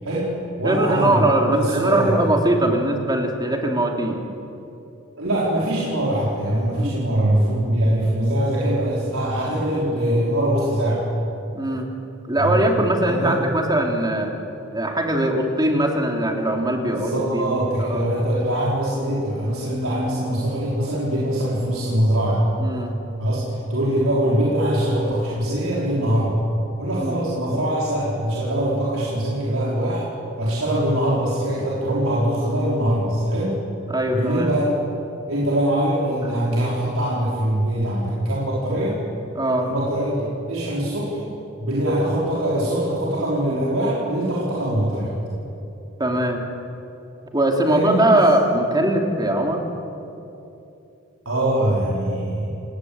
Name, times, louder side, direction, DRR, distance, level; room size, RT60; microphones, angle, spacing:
voice 1, 0.0-2.3 5.2-11.0 12.4-12.7 13.1-13.5 16.8-22.4 23.2-26.4 26.8-30.0 30.4-33.6 34.1-34.7 35.3-39.0 39.6-41.3 41.6-45.2 47.7-48.2 51.3-52.4, right 1 dB, 85° right, -6 dB, 5.2 m, -22 dB
voice 2, 0.6-4.2 6.8-7.0 11.5-11.9 12.3-14.3 14.7-18.0 22.6-23.0 27.0-27.1 33.9-34.5 39.3-39.7 46.0-46.4 47.3-49.7, right 1 dB, 20° right, 2 dB, 3.2 m, -21 dB
29.0 x 19.5 x 8.9 m, 2.8 s
head